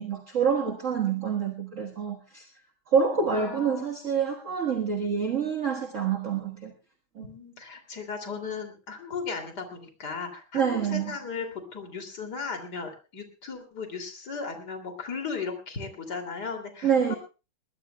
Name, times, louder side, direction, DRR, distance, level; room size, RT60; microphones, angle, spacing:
voice 1, 0.0-2.5 2.9-6.7 7.2-7.3 10.5-11.2 16.8-17.1, right 6 dB, 40° right, 1 dB, 1.7 m, -27 dB
voice 2, 3.4-3.9 7.2-17.2, left 5 dB, 50° left, 4 dB, 3.4 m, -36 dB
20.5 x 20.5 x 2.3 m, 0.32 s
omnidirectional pair, 2.2 m